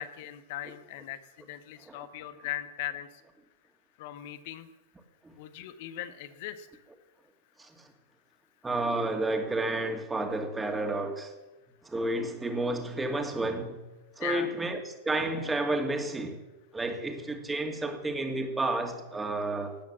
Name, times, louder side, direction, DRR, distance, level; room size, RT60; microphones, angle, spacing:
voice 1, 0.0-3.2 4.0-4.7 5.4-6.7 14.2-14.5, left 13 dB, 50° left, 1.4 m, -39 dB
voice 2, 8.6-11.3 11.8-13.8 14.2-16.4 16.7-19.8, right 2 dB, 10° right, 2.5 m, -31 dB
18.5 x 10.0 x 7.5 m
figure-of-eight pair, 90°, 0 cm